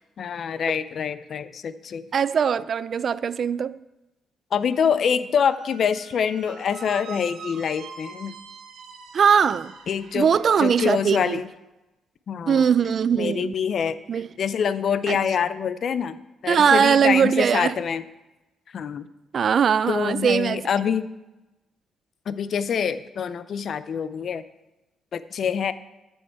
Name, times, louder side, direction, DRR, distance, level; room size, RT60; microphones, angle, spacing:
voice 1, 0.2-2.0 4.5-8.3 9.9-10.3 10.6-11.5 12.3-12.6 13.2-16.2 16.4-18.0 18.7-19.1 19.9-21.1 22.3-24.4 25.1-25.7, left 7 dB, 55° left, 0.5 m, -25 dB
voice 2, 2.1-3.8 9.1-9.7 10.1-11.4 12.5-13.5 14.1-14.3 15.1-15.2 16.5-17.7 19.3-20.6, right 7 dB, 50° right, 0.3 m, -20 dB
Squeak, 5.4-11.4, right 6 dB, 75° right, 1.1 m, -44 dB
13.5 x 5.5 x 4.6 m
cardioid pair, 90°, 0 cm